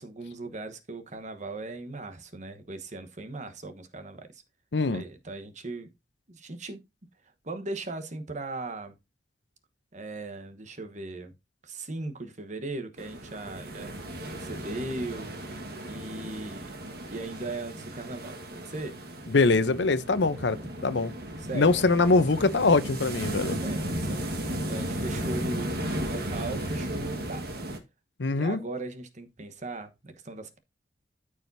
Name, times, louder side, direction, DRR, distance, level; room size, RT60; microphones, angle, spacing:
voice 1, 0.0-4.4 4.9-5.9 6.3-6.8 7.4-8.9 9.9-11.3 11.6-14.0 14.3-15.4 15.8-16.8 17.1-18.4 18.7-19.0 21.5-21.7 23.6-25.7 26.1-27.4 28.3-30.6, right 2 dB, 45° right, 1.1 m, -38 dB
voice 2, 4.7-5.0 19.3-21.1 21.5-23.6 28.2-28.6, left 3 dB, 85° left, 0.7 m, -23 dB
sound 1, 13.0-27.8, right 1 dB, 60° right, 1.6 m, -35 dB
13.5 x 4.9 x 2.7 m
head